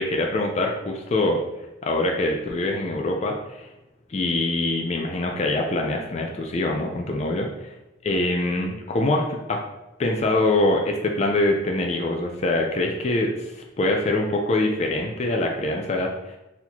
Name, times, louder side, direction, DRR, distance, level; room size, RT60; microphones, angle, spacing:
voice 1, 0.0-1.4 1.8-3.7 4.1-7.5 8.0-9.6 10.0-16.4, left 2 dB, 35° left, 2 dB, 0.3 m, -24 dB
4.0 x 2.8 x 2.9 m, 1.0 s
head